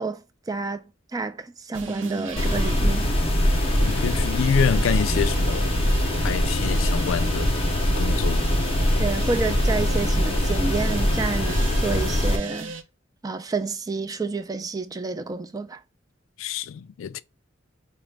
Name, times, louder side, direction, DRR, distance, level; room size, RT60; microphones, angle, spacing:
voice 1, 0.0-3.1 9.0-12.7 13.2-15.8, right 4 dB, 20° right, 0.3 m, -29 dB
sound 1, 1.7-12.8, right 4 dB, 70° right, 0.6 m, -36 dB
sound 2, 2.4-12.4, left 1 dB, 30° left, 0.6 m, -23 dB
voice 2, 3.8-5.7 6.2-7.5 8.0-8.5 16.4-17.2, left 7 dB, 90° left, 0.3 m, -27 dB
4.9 x 2.1 x 3.2 m
head